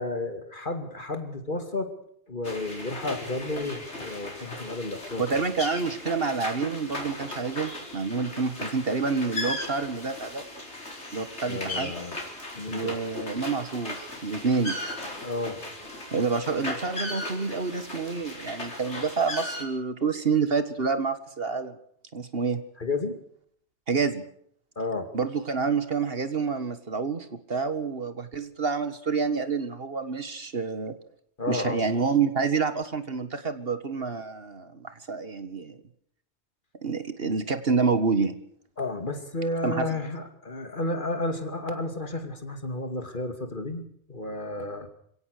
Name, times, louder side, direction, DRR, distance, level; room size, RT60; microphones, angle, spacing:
voice 1, 0.0-1.9 2.3-5.4 11.5-12.2 12.5-12.9 15.2-15.6 22.8-23.2 24.8-25.1 31.4-31.9 38.8-44.9, left 2 dB, 45° left, 7 dB, 2.7 m, -32 dB
sound 1, 2.4-19.6, left 1 dB, 75° left, 4.9 m, -37 dB
voice 2, 5.2-10.4 11.1-11.9 12.7-14.7 16.1-21.8 22.1-22.6 23.9-24.2 25.1-30.9 31.5-35.8 36.8-38.3 39.6-40.0, right 4 dB, 55° right, 11 dB, 1.9 m, -28 dB
28.0 x 17.5 x 6.7 m, 0.66 s
omnidirectional pair, 1.2 m